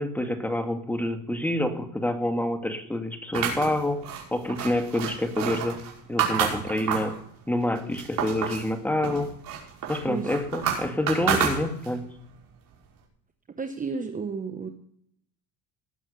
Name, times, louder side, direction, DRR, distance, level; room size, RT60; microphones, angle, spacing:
voice 1, 0.0-4.0 4.3-5.8 6.1-7.1 7.5-9.3 9.9-12.0, left 1 dB, 5° left, 6 dB, 2.0 m, -27 dB
sound 1, 3.3-7.2 7.6-8.7 9.0-12.1, right 8 dB, 60° right, 5.2 m, -29 dB
voice 2, 13.6-14.7, right 5 dB, 20° right, 6 dB, 1.0 m, -32 dB
19.0 x 7.0 x 6.9 m, 0.68 s
supercardioid pair, 110°, 39 cm